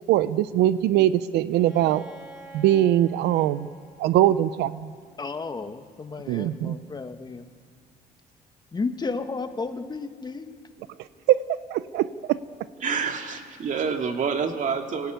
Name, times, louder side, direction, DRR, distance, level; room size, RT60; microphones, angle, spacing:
voice 1, 0.1-2.0 2.5-3.7 4.0-4.9 6.3-6.8 11.3-11.4 11.7-12.4, right 13 dB, 80° right, 15 dB, 0.6 m, -21 dB
Bowed string instrument, 1.5-5.3, right 1 dB, 5° right, 5.9 m, -48 dB
voice 2, 5.2-7.5 8.7-10.5, left 4 dB, 25° left, 8 dB, 1.3 m, -33 dB
voice 3, 12.8-15.1, right 6 dB, 50° right, 4 dB, 2.4 m, -27 dB
25.0 x 17.0 x 9.3 m, 2.1 s
cardioid pair, 110°, 17 cm